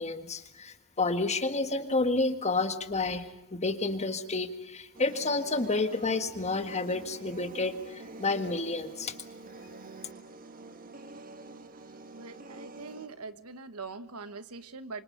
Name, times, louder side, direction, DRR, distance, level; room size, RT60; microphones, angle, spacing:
voice 1, 0.0-3.3 3.6-9.1, left 3 dB, 30° left, 9 dB, 1.7 m, -30 dB
sound 1, 4.9-13.1, right 3 dB, 40° right, 1.7 m, -47 dB
voice 2, 12.1-15.0, right 4 dB, 85° right, 12 dB, 1.3 m, -43 dB
27.0 x 25.5 x 6.7 m, 0.90 s
head